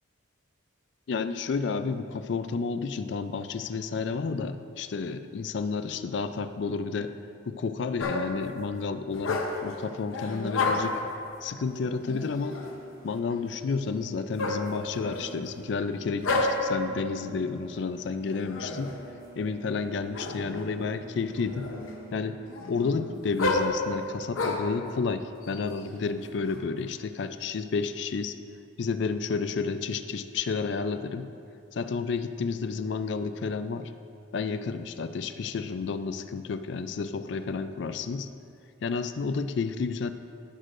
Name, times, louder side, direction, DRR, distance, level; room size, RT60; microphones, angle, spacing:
voice 1, 1.1-7.1 7.5-11.0 11.4-12.6 13.0-18.9 19.4-21.7 22.1-22.4 22.7-28.4 28.8-31.3 31.7-33.9 34.3-38.3 38.8-40.1, left 4 dB, 60° left, 11 dB, 0.4 m, -31 dB
sound 1, 8.0-8.5 9.1-9.7 10.1-11.1 12.0-12.8 14.4-15.4 16.2-16.8 18.3-19.0 20.1-20.7 21.2-22.0 22.5-24.8 25.5-26.6, left 2 dB, 90° left, 0.8 m, -31 dB
sound 2, 11.4-22.2, right 4 dB, 15° right, 0.9 m, -50 dB
14.0 x 6.4 x 2.5 m, 2.6 s
head